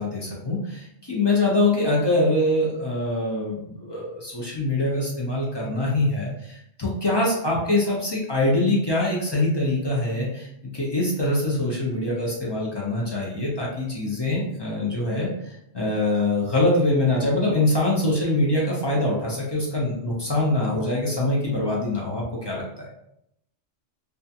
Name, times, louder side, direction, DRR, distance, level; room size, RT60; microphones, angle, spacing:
voice 1, 0.0-22.9, left 2 dB, 45° left, -4 dB, 0.3 m, -24 dB
2.4 x 2.2 x 2.7 m, 0.77 s
omnidirectional pair, 1.2 m